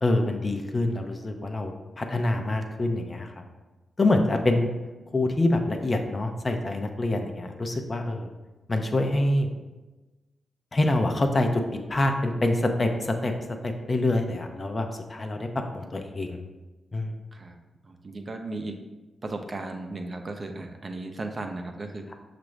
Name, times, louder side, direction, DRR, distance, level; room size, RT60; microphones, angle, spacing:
voice 1, 0.0-3.4 4.0-4.7 5.1-8.3 8.7-9.5 10.7-11.6 11.9-13.3 13.6-15.5 15.7-16.4 16.9-17.1, left 2 dB, 40° left, 4 dB, 0.6 m, -26 dB
voice 2, 17.8-18.8 19.2-22.1, right 2 dB, 50° right, 4 dB, 0.5 m, -36 dB
5.8 x 2.5 x 3.1 m, 1.1 s
supercardioid pair, 45°, 0 cm